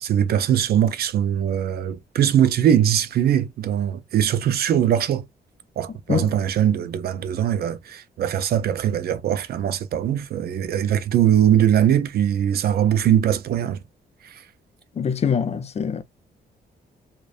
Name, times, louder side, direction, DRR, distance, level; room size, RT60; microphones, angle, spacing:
voice 1, 0.0-5.3 5.8-13.8 14.2-14.4, right 10 dB, 65° right, 0.4 m, -21 dB
voice 2, 15.0-16.0, left 7 dB, 40° left, 0.4 m, -24 dB
2.5 x 2.1 x 2.3 m
cardioid pair, 85°, 17 cm